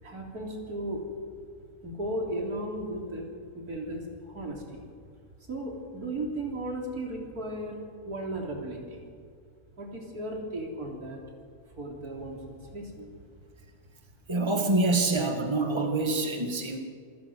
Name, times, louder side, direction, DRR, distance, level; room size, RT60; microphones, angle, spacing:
voice 1, 0.0-1.0 1.8-3.3 3.5-4.9 5.5-9.0 9.8-11.2 11.8-13.1, right 1 dB, 90° right, 0 dB, 4.0 m, -35 dB
voice 2, 14.3-16.8, right 2 dB, 20° right, 4 dB, 1.8 m, -26 dB
26.5 x 16.5 x 6.3 m, 2.1 s
omnidirectional pair, 1.6 m